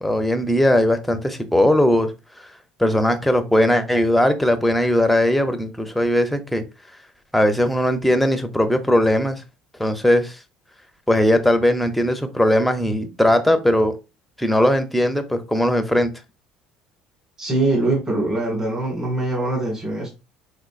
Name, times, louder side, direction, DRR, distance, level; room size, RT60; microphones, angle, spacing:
voice 1, 0.0-2.1 2.8-6.6 7.3-9.4 9.8-10.4 11.1-13.9 14.4-16.1, left 1 dB, 5° left, 7 dB, 0.6 m, -19 dB
voice 2, 17.4-20.1, right 2 dB, 25° right, 0 dB, 1.8 m, -23 dB
5.0 x 3.9 x 2.4 m, 0.28 s
cardioid pair, 125°, 2 cm